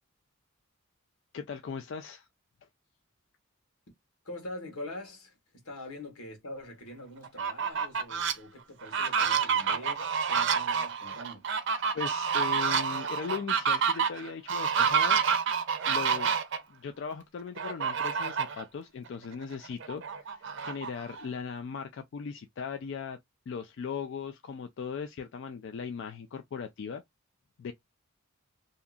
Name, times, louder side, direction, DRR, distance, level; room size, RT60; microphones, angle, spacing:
voice 1, 1.3-2.3 11.9-15.2 15.8-16.3 16.7-23.2 23.5-27.0 27.6-27.7, left 6 dB, 55° left, 0.3 m, -38 dB
voice 2, 4.2-11.5, left 1 dB, 85° left, 1.3 m, -44 dB
Fowl, 7.2-8.3 8.8-16.6 17.6-18.6 19.1-19.2 19.5-21.3, right 6 dB, 55° right, 0.5 m, -28 dB
2.7 x 2.4 x 2.3 m
head